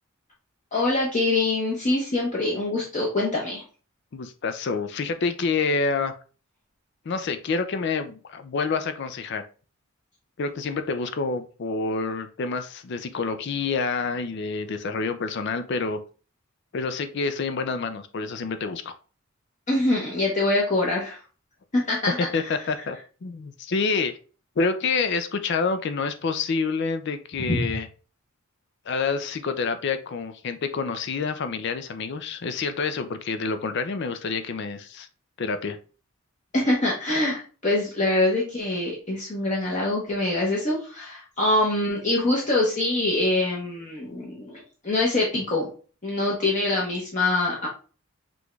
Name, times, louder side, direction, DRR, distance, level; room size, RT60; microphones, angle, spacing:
voice 1, 0.7-3.6 19.7-21.2 21.9-22.2 27.5-27.6 36.5-45.7 46.0-47.7, left 2 dB, 35° left, -4 dB, 0.9 m, -24 dB
voice 2, 4.1-6.1 7.1-9.4 10.4-16.0 16.7-18.9 22.2-24.2 24.6-27.9 28.9-35.1 35.4-35.8, left 4 dB, 55° left, 9 dB, 0.4 m, -28 dB
6.1 x 2.3 x 3.1 m, 0.37 s
head